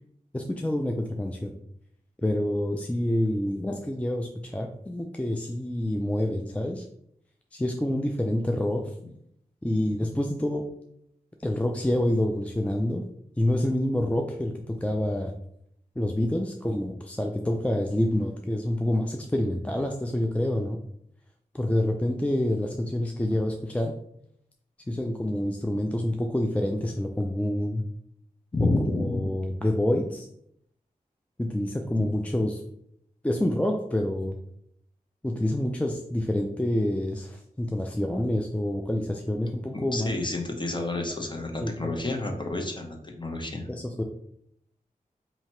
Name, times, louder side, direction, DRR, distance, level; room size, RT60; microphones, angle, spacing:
voice 1, 0.3-1.5 2.2-6.8 7.5-8.8 9.6-10.6 11.4-13.0 13.4-15.3 16.0-20.8 21.5-23.9 24.9-27.8 29.0-30.3 31.4-32.6 33.2-34.4 35.2-40.1 41.6-41.7 43.7-44.0, left 1 dB, 10° left, 2 dB, 0.4 m, -27 dB
voice 2, 28.5-29.3 39.7-43.7, left 2 dB, 30° left, 2 dB, 0.9 m, -29 dB
2.8 x 2.8 x 4.4 m, 0.72 s
cardioid pair, 40°, 15 cm